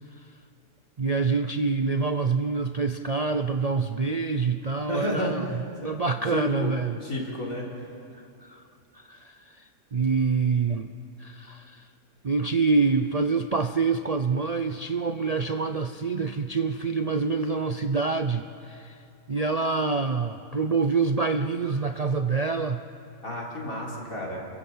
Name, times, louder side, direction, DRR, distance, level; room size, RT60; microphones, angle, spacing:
voice 1, 1.0-7.0 8.4-8.6 8.9-9.6 9.9-10.9 11.2-11.8 12.2-19.0 19.3-22.8, right 4 dB, 45° right, 8 dB, 0.5 m, -26 dB
voice 2, 4.9-5.3 5.8-6.0 6.3-6.7 7.0-7.6 23.2-24.4, left 1 dB, 75° left, -3 dB, 4.3 m, -31 dB
28.0 x 22.5 x 5.7 m, 2.6 s
omnidirectional pair, 1.5 m